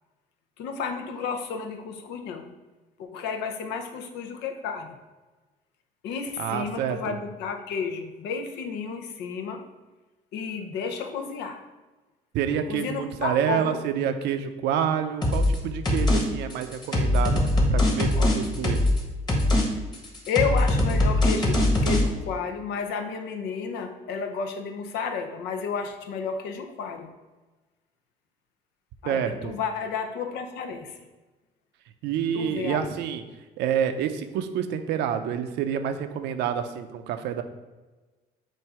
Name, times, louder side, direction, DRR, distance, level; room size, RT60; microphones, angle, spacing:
voice 1, 0.6-2.5 3.0-5.0 6.0-9.6 10.3-11.6 12.7-13.8 18.1-18.4 20.3-27.1 29.0-31.0 32.3-32.9, left 5 dB, 85° left, 6 dB, 0.8 m, -32 dB
voice 2, 6.4-7.2 12.3-17.4 17.7-18.8 29.0-29.5 32.0-33.2 33.6-37.4, right 8 dB, 85° right, 8 dB, 0.6 m, -28 dB
sound 1, 15.2-15.6 15.9-16.2 16.5-19.0 19.3-19.7 19.9-22.0, left 1 dB, 25° left, 1.4 m, -22 dB
7.5 x 2.6 x 4.8 m, 1.2 s
cardioid pair, 110°, 17 cm